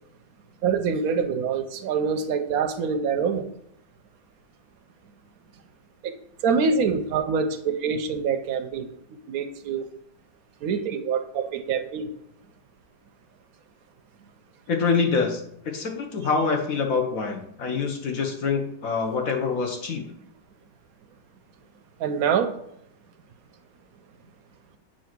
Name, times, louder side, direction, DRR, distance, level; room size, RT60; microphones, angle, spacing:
voice 1, 0.6-3.4 6.0-6.1 6.4-8.9 9.3-9.9 10.6-12.1 22.0-22.5, right 6 dB, 65° right, 7 dB, 0.9 m, -25 dB
voice 2, 14.7-15.4 15.7-20.0, left 5 dB, 55° left, 2 dB, 1.2 m, -25 dB
7.5 x 2.9 x 5.9 m, 0.73 s
omnidirectional pair, 2.0 m